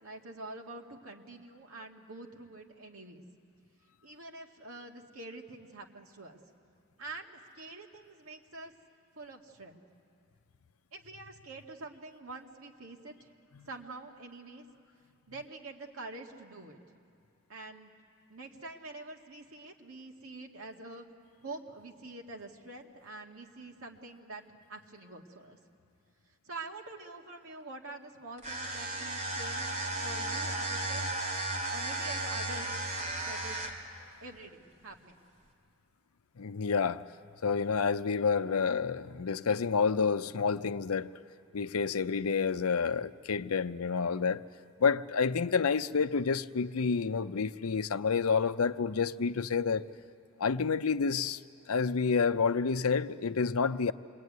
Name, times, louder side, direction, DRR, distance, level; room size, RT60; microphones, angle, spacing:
voice 1, 0.0-3.2 4.0-6.4 7.0-8.7 9.1-9.8 10.9-13.3 13.7-14.7 15.3-16.8 17.5-17.9 18.3-21.1 21.4-25.6 26.4-31.2 31.7-32.8 33.2-33.6 34.2-35.2, right 2 dB, 75° right, 2.1 m, -46 dB
sound 1, 28.4-33.9, right 2 dB, 35° right, 2.8 m, -34 dB
voice 2, 36.4-37.0 37.4-41.1 41.5-44.4 44.8-49.9 50.4-51.4 51.7-53.9, left 5 dB, 85° left, 0.6 m, -29 dB
27.0 x 22.0 x 9.5 m
head